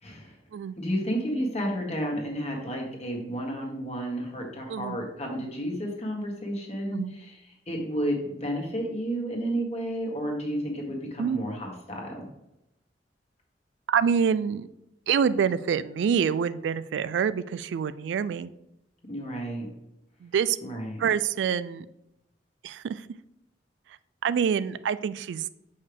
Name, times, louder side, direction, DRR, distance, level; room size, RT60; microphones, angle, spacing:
voice 1, 0.0-0.4 0.8-12.3 19.1-19.7 20.6-21.0, equal, 35° left, 0 dB, 1.5 m, -31 dB
voice 2, 13.9-14.7 15.1-18.5 20.2-20.6 21.0-21.9 22.6-23.1 24.2-25.5, right 7 dB, 75° right, 15 dB, 0.3 m, -26 dB
6.5 x 5.4 x 3.4 m, 0.86 s
head